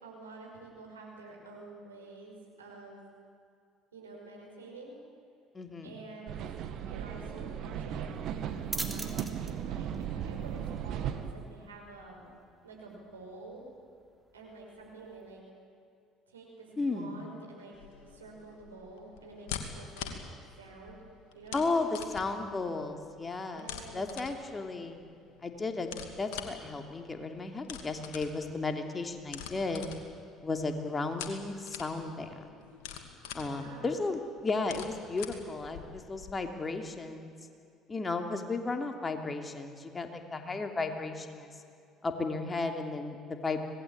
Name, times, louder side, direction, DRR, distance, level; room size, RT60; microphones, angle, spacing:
voice 1, 0.0-3.0 3.9-5.0 5.8-6.4 6.9-12.3 12.6-13.7 14.3-15.4 16.3-17.7 18.1-20.1 20.6-21.0 21.3-22.0 23.5-24.1 33.2-34.0, right 3 dB, 90° right, -1 dB, 5.5 m, -49 dB
voice 2, 5.5-6.0 16.8-17.2 21.5-23.7 23.9-25.0 25.4-25.9 26.2-29.8 30.4-32.4 33.3-37.3 37.9-41.5 42.0-43.6, left 3 dB, 25° left, 5 dB, 3.1 m, -34 dB
sound 1, 6.3-11.3, right 9 dB, 60° right, 1.8 m, -36 dB
sound 2, 8.1-15.4, right 1 dB, 10° right, 3.2 m, -46 dB
sound 3, 17.7-36.3, left 8 dB, 70° left, 2.5 m, -46 dB
25.5 x 19.5 x 8.8 m, 2.4 s
hypercardioid pair, 60°, 0 cm